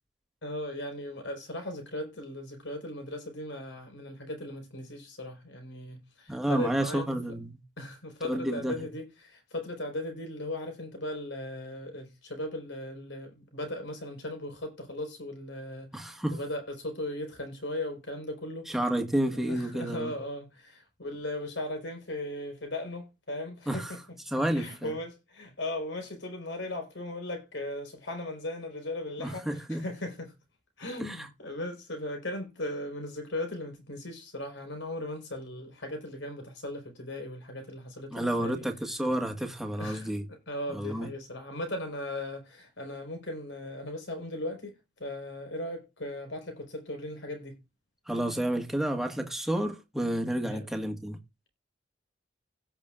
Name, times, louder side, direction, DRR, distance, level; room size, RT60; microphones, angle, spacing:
voice 1, 0.4-7.1 7.8-18.7 19.5-24.0 24.5-30.3 30.8-38.6 39.8-47.6 50.4-50.6, left 1 dB, 80° left, 4.7 m, -38 dB
voice 2, 6.3-7.6 8.2-8.9 15.9-16.4 18.7-20.1 23.7-23.9 24.3-24.9 29.2-29.8 31.0-31.3 38.1-40.2 40.7-41.1 48.1-51.2, right 1 dB, ahead, 1.7 m, -30 dB
17.0 x 6.2 x 2.5 m
head